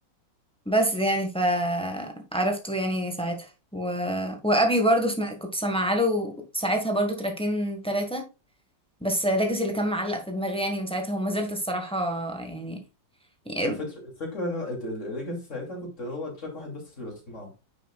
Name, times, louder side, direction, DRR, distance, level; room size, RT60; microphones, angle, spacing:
voice 1, 0.6-3.5 3.7-8.3 9.0-12.8 13.4-13.8, equal, 5° left, 1.3 m, -26 dB
voice 2, 14.2-17.5, left 1 dB, 40° left, 3.0 m, -34 dB
9.1 x 6.9 x 2.4 m
omnidirectional pair, 2.0 m